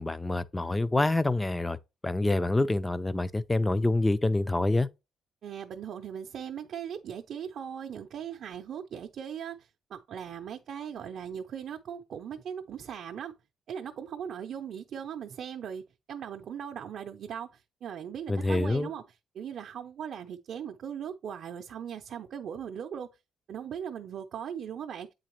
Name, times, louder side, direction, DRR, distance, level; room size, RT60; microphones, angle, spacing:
voice 1, 0.0-1.8 2.0-4.9 18.3-18.9, left 2 dB, 15° left, 0.4 m, -26 dB
voice 2, 5.4-13.3 13.7-15.8 16.1-19.0 19.3-23.1 23.5-25.1, right 8 dB, 65° right, 0.5 m, -39 dB
8.2 x 3.9 x 2.9 m
cardioid pair, 110°, 0 cm